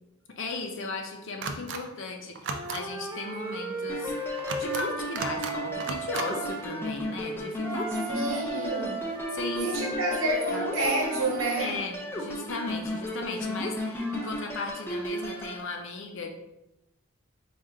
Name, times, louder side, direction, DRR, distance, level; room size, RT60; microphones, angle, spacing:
voice 1, 0.4-8.9 9.3-9.9 10.5-10.7 11.6-16.3, left 3 dB, 60° left, 3 dB, 0.6 m, -36 dB
sound 1, 1.4-1.8 2.3-2.8 4.4-4.8 5.1-5.5 5.8-6.3, right 4 dB, 60° right, 0.4 m, -34 dB
Wind instrument woodwind instrument, 2.5-6.6 7.6-11.5, right 2 dB, 10° right, 0.8 m, -36 dB
sound 2, 3.9-15.6, equal, 10° left, 0.5 m, -35 dB
voice 2, 8.1-9.0 9.6-11.8, right 2 dB, 80° right, -1 dB, 1.1 m, -29 dB
4.3 x 2.4 x 3.7 m, 0.92 s
head